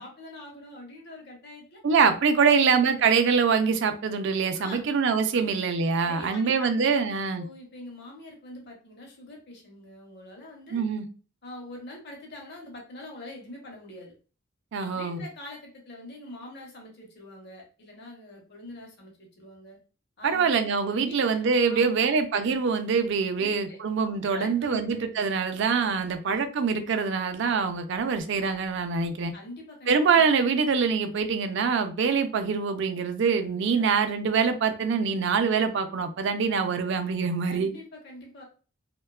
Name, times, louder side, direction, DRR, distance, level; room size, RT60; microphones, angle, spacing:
voice 1, 0.0-1.8 2.4-2.6 4.5-4.8 5.3-5.5 6.0-7.0 7.4-10.9 11.4-14.1 14.8-19.8 20.2-20.6 21.1-22.1 23.4-23.8 24.3-25.1 26.3-26.4 29.3-30.3 33.7-33.9 37.5-38.4, left 1 dB, 55° left, 0.8 m, -44 dB
voice 2, 1.8-7.4 10.7-11.1 14.7-15.3 20.2-29.3 29.9-37.7, right 5 dB, 60° right, 0.4 m, -24 dB
2.7 x 2.2 x 2.2 m
head